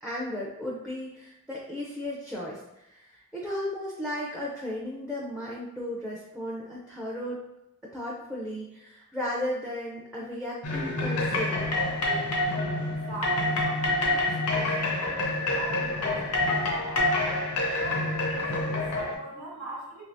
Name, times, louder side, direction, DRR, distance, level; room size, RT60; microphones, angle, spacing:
voice 1, 0.0-7.4 7.9-11.8, left 1 dB, 5° right, -5 dB, 0.4 m, -35 dB
sound 1, 10.6-19.2, left 2 dB, 85° left, 0.7 m, -27 dB
voice 2, 13.1-17.0 17.8-20.0, right 1 dB, 75° right, -5 dB, 1.0 m, -42 dB
3.3 x 2.7 x 2.6 m, 0.84 s
head